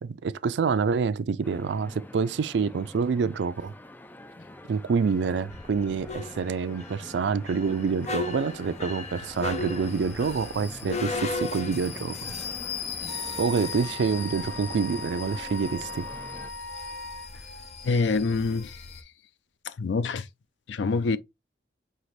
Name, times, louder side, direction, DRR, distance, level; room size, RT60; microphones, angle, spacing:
voice 1, 0.0-3.7 4.7-12.2 13.4-16.0, right 5 dB, 70° right, 0.4 m, -27 dB
sound 1, 1.4-16.5, left 1 dB, 10° left, 0.3 m, -46 dB
sound 2, 5.5-19.0, left 4 dB, 40° left, 0.7 m, -37 dB
Wind instrument woodwind instrument, 13.1-17.3, left 2 dB, 35° right, 1.0 m, -39 dB
voice 2, 17.8-18.9 19.6-20.3 20.7-21.2, left 4 dB, 80° left, 0.4 m, -26 dB
5.7 x 2.9 x 3.1 m
head